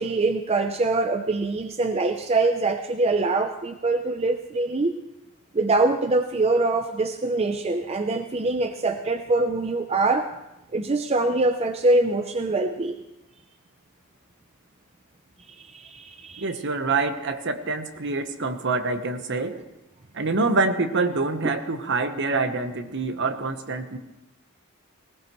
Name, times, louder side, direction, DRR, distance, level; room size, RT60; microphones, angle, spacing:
voice 1, 0.0-4.9 5.5-10.3 10.7-13.0 15.5-16.5, right 2 dB, 30° right, 7 dB, 0.5 m, -24 dB
voice 2, 16.4-19.6 20.1-24.0, right 3 dB, 55° right, 8 dB, 1.0 m, -26 dB
19.0 x 17.5 x 3.1 m, 0.93 s
head